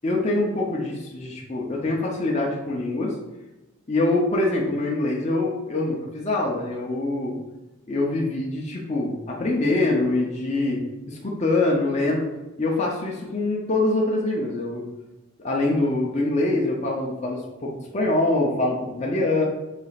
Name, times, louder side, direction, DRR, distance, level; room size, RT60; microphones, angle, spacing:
voice 1, 0.0-3.1 3.9-7.3 7.9-12.3 12.6-14.8 15.4-19.5, left 2 dB, 30° left, -2 dB, 0.5 m, -24 dB
4.1 x 2.4 x 4.0 m, 1.0 s
head